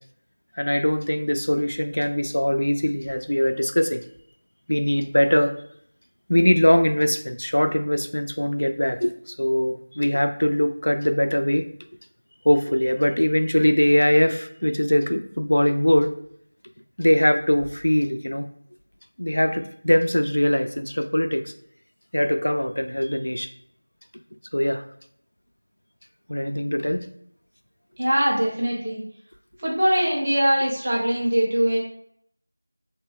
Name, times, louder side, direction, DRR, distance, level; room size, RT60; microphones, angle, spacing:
voice 1, 0.5-4.0 4.7-5.5 6.3-11.7 12.4-16.1 17.0-18.5 19.2-21.5 22.1-23.5 24.5-24.9 26.3-27.1, equal, 75° left, 8 dB, 0.3 m, -21 dB
voice 2, 28.0-29.0 29.6-31.8, equal, 15° right, -5 dB, 0.4 m, -22 dB
2.9 x 2.1 x 3.2 m, 0.66 s
figure-of-eight pair, 180°, 0 cm